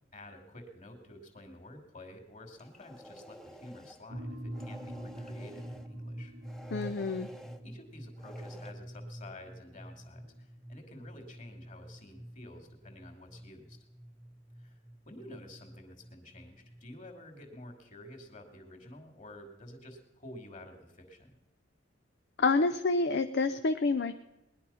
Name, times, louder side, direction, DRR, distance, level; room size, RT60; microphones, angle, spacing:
voice 1, 0.1-6.3 7.6-13.8 14.6-14.8 15.1-21.4, left 1 dB, 40° left, 4 dB, 2.7 m, -50 dB
sound 1, 2.5-4.0 4.5-5.9 6.4-7.6 8.2-8.7, equal, ahead, 0.9 m, -50 dB
sound 2, 4.1-17.1, right 1 dB, 90° right, 2.6 m, -46 dB
voice 2, 6.7-7.3 22.4-24.2, left 3 dB, 60° left, 9 dB, 0.6 m, -28 dB
19.5 x 11.0 x 5.7 m, 0.97 s
head